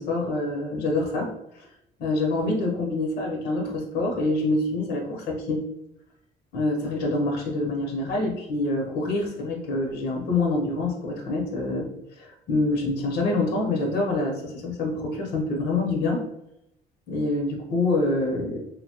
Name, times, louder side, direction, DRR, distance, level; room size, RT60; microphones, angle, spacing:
voice 1, 0.0-1.7 2.0-5.6 6.5-16.2 17.1-18.6, left 2 dB, 85° left, 0 dB, 0.8 m, -26 dB
2.9 x 2.2 x 2.8 m, 0.79 s
cardioid pair, 110°, 17 cm